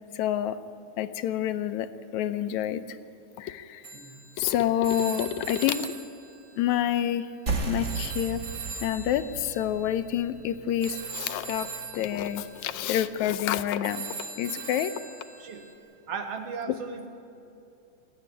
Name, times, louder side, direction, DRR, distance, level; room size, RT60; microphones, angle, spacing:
voice 1, 0.1-0.6 1.0-2.8 3.4-3.8 4.4-6.0 6.6-7.3 7.7-8.4 8.8-14.1 14.4-14.9, left 11 dB, 80° left, 10 dB, 2.1 m, -28 dB
Telephone, 3.8-7.5 7.8-15.7, right 5 dB, 75° right, 0.7 m, -41 dB
voice 2, 3.9-4.3 15.4-15.6 16.1-17.1, right 5 dB, 60° right, 5 dB, 2.5 m, -36 dB
sound 1, 7.5-12.6, right 4 dB, 30° right, 1.6 m, -36 dB
29.0 x 9.7 x 9.9 m, 2.6 s
omnidirectional pair, 3.3 m